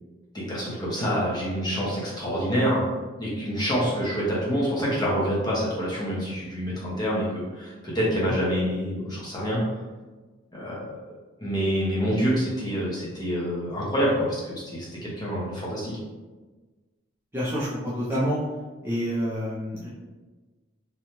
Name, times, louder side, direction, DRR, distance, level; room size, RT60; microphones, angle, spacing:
voice 1, 0.3-2.9 3.2-9.6 10.5-11.2 11.4-16.0, equal, 20° left, -6 dB, 0.7 m, -27 dB
voice 2, 17.3-18.4 18.8-19.9, equal, 10° right, -9 dB, 0.4 m, -27 dB
2.7 x 2.2 x 3.0 m, 1.3 s
head